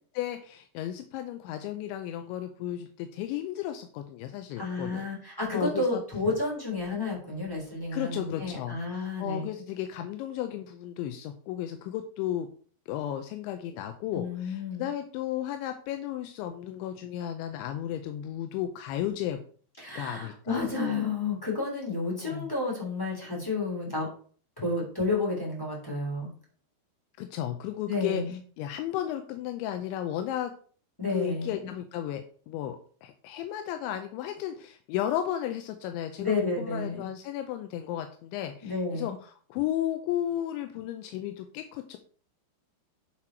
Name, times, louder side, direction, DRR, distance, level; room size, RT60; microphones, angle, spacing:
voice 1, 0.1-5.1 5.5-6.0 7.9-12.5 12.9-19.4 20.0-20.7 22.2-22.5 27.2-30.5 31.1-42.0, left 11 dB, 85° left, 7 dB, 3.0 m, -34 dB
voice 2, 4.6-9.5 14.1-14.9 19.8-24.1 24.6-26.3 27.9-28.4 31.0-31.7 36.2-37.1 38.6-39.2, left 3 dB, 5° left, -3 dB, 2.3 m, -31 dB
9.8 x 6.0 x 4.5 m, 0.44 s
omnidirectional pair, 5.3 m